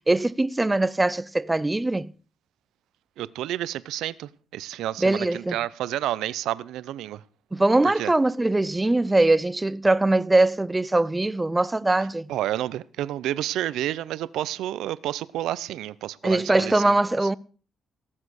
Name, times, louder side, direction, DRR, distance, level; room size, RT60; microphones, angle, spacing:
voice 1, 0.0-2.1 5.0-5.6 7.5-12.3 16.2-17.4, right 2 dB, 15° right, 0.6 m, -22 dB
voice 2, 3.2-7.2 7.8-8.1 12.3-17.0, right 13 dB, 85° right, 0.7 m, -30 dB
18.0 x 7.5 x 6.3 m
cardioid pair, 90°, 0 cm